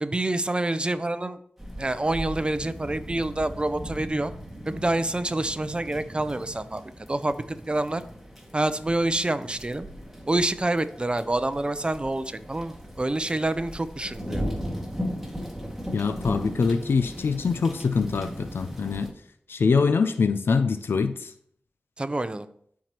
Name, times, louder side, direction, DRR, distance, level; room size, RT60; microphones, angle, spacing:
voice 1, 0.0-1.4 1.8-4.3 4.7-6.8 7.1-8.0 8.5-9.9 10.3-14.4 22.0-22.5, right 2 dB, 25° right, 12 dB, 0.6 m, -27 dB
sound 1, 1.6-19.1, equal, ahead, 2.0 m, -38 dB
voice 2, 15.9-19.1 19.5-21.3, left 5 dB, 80° left, 10 dB, 0.4 m, -24 dB
13.0 x 4.7 x 3.0 m, 0.66 s
cardioid pair, 55°, 4 cm